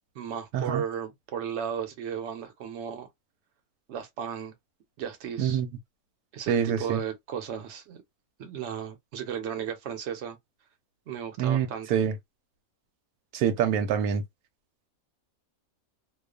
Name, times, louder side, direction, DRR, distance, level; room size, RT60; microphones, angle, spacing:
voice 1, 0.1-3.1 3.9-4.5 5.0-5.6 6.3-8.0 8.4-10.4 11.1-12.0, right 8 dB, 60° right, 0.9 m, -35 dB
voice 2, 6.5-7.0 11.4-12.1 13.3-14.2, right 8 dB, 90° right, 1.1 m, -26 dB
2.4 x 2.3 x 2.3 m
omnidirectional pair, 1.5 m